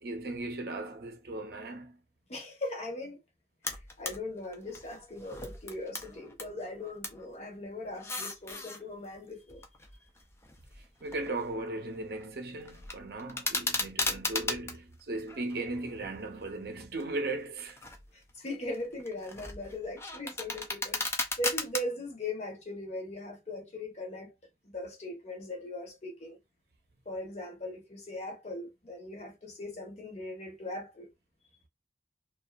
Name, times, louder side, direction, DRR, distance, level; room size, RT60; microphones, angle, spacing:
voice 1, 0.0-2.0 11.0-17.8, right 2 dB, 55° right, 0.6 m, -37 dB
voice 2, 2.3-3.2 3.7-9.6 18.1-21.0 21.4-24.3 24.6-26.4 27.1-31.1, left 1 dB, 35° left, 0.8 m, -39 dB
sound 1, 3.6-4.2 4.5-6.5 6.8-7.2 7.9-8.8 9.5-11.6 11.9-12.3 12.6-14.8 15.3-16.2 16.7-17.0 17.6-18.1 18.5-21.8, left 3 dB, 15° left, 0.3 m, -36 dB
2.6 x 2.3 x 2.3 m
head